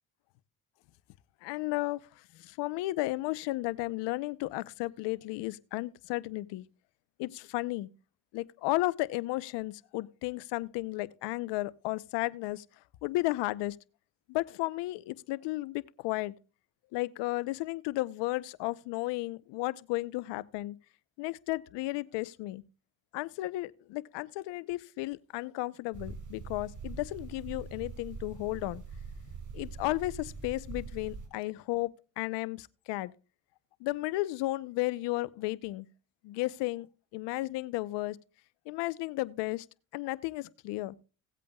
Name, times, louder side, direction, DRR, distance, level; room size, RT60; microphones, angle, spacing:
voice 1, 1.4-6.7 7.2-7.9 8.3-12.6 13.0-13.8 14.3-16.3 16.9-20.8 21.2-22.6 23.1-28.8 29.5-33.1 33.8-35.9 36.2-38.2 38.7-39.7 39.9-41.0, left 19 dB, 85° left, 0.8 m, -34 dB
sound 1, 25.9-31.3, right 4 dB, 45° right, 3.6 m, -43 dB
17.5 x 8.4 x 2.3 m
supercardioid pair, 80°, 41 cm